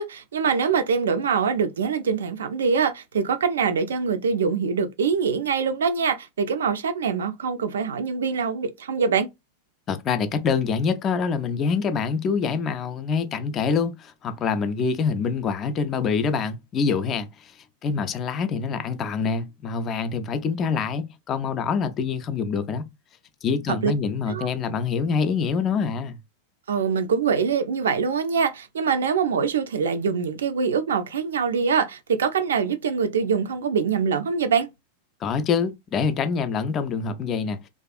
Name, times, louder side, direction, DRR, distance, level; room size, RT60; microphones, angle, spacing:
voice 1, 0.0-9.3 23.8-23.9 24.3-24.5 26.7-34.7, right 6 dB, 65° right, 0.4 m, -24 dB
voice 2, 9.9-17.5 17.8-22.9 23.4-26.2 35.2-37.6, left 5 dB, 30° left, 0.3 m, -25 dB
2.5 x 2.2 x 2.4 m
figure-of-eight pair, 90°, 0 cm